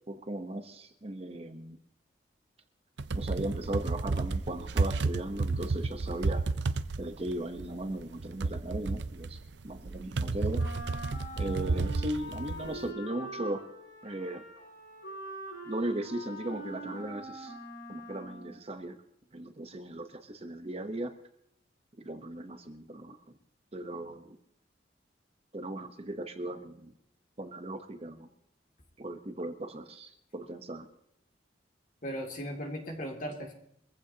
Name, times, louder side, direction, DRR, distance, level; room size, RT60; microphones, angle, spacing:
voice 1, 0.1-1.8 3.1-6.4 7.0-9.4 9.6-10.6 11.4-13.6 14.0-14.4 15.7-17.5 17.9-19.0 19.3-21.1 22.0-23.2 23.7-24.4 25.5-26.9 27.4-28.3 29.0-30.9, right 1 dB, 35° right, 7 dB, 0.9 m, -37 dB
sound 1, 3.0-12.9, right 3 dB, 65° right, 0.6 m, -32 dB
Wind instrument woodwind instrument, 10.5-18.6, right 1 dB, 80° left, 7.5 m, -44 dB
voice 2, 32.0-33.5, equal, 45° left, 1 dB, 2.5 m, -37 dB
23.5 x 15.0 x 2.8 m, 0.73 s
head